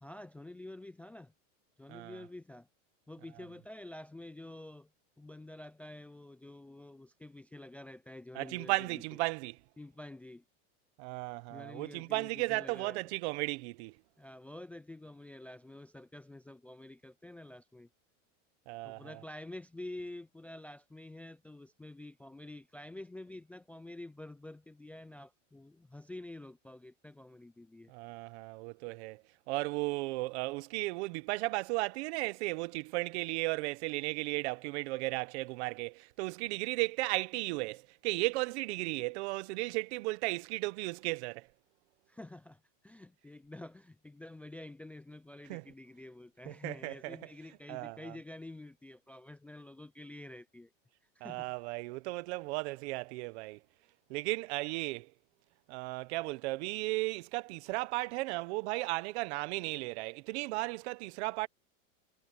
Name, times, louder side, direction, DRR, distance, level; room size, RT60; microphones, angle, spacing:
voice 1, 0.0-1.3 1.8-2.7 3.1-4.9 5.2-9.0 9.8-10.4 11.5-13.0 14.2-17.9 18.8-27.9 42.1-50.7 51.2-51.5, left 1 dB, 5° left, 0.5 m, -48 dB
voice 2, 1.9-2.2 8.3-9.6 11.0-13.9 18.7-19.2 27.9-29.2 29.5-41.5 45.5-45.6 46.5-47.2 47.7-48.2 51.2-53.6 54.1-55.1 55.7-61.5, right 23 dB, 55° right, 1.1 m, -35 dB
supercardioid pair, 145°, 38 cm